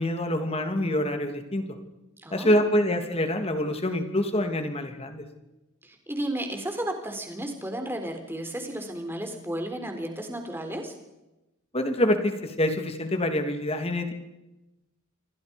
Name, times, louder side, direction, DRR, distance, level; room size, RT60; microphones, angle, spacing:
voice 1, 0.0-1.8 2.3-5.2 11.7-14.1, left 1 dB, 30° left, 6 dB, 2.9 m, -26 dB
voice 2, 2.2-2.7 5.8-10.9, right 1 dB, 10° right, 5 dB, 4.0 m, -33 dB
28.0 x 25.0 x 5.4 m, 0.98 s
head